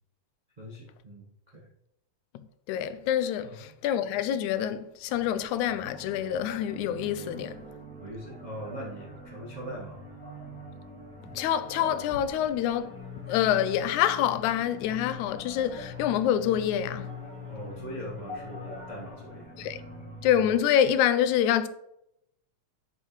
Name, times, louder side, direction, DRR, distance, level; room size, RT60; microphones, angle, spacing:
voice 1, 0.6-1.3 1.5-1.7 3.4-3.7 8.0-10.1 17.5-19.5, right 1 dB, 85° right, 0.3 m, -41 dB
voice 2, 2.7-7.6 11.4-12.9 13.3-17.1 19.6-19.8 20.2-21.7, left 10 dB, 90° left, 2.0 m, -26 dB
sound 1, 5.1-20.5, left 2 dB, 5° left, 0.8 m, -43 dB
7.8 x 7.7 x 3.2 m
omnidirectional pair, 3.3 m